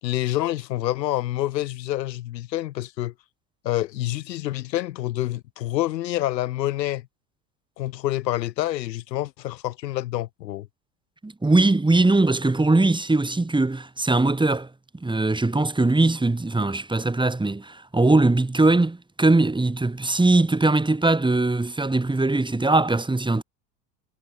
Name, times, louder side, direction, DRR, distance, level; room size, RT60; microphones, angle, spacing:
voice 1, 0.0-3.1 3.6-7.0 7.8-10.7, left 14 dB, 80° left, 2.1 m, -27 dB
voice 2, 11.2-14.7 15.0-23.4, right 2 dB, 10° right, 3.6 m, -21 dB
hypercardioid pair, 90°, 50 cm